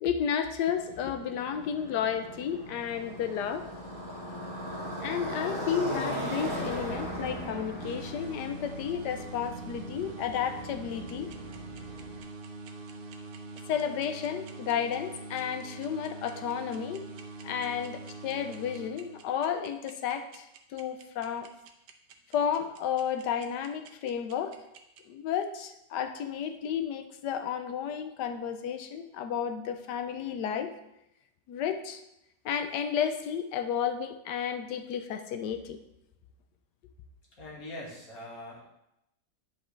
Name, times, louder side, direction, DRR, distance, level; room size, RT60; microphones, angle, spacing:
voice 1, 0.0-3.7 5.0-11.3 13.7-17.0 17.4-21.5 22.3-24.6 25.1-30.7 31.5-32.0 32.4-35.8, left 8 dB, 85° left, 8 dB, 1.3 m, -32 dB
Motorcycle, 0.8-12.2, equal, 25° right, 1.8 m, -38 dB
sound 1, 7.8-19.5, right 3 dB, 50° right, 0.6 m, -44 dB
sound 2, 11.1-25.0, right 9 dB, 80° right, 1.3 m, -52 dB
voice 2, 37.4-38.6, left 1 dB, 60° left, -5 dB, 2.5 m, -42 dB
10.0 x 4.9 x 3.2 m, 0.84 s
omnidirectional pair, 1.8 m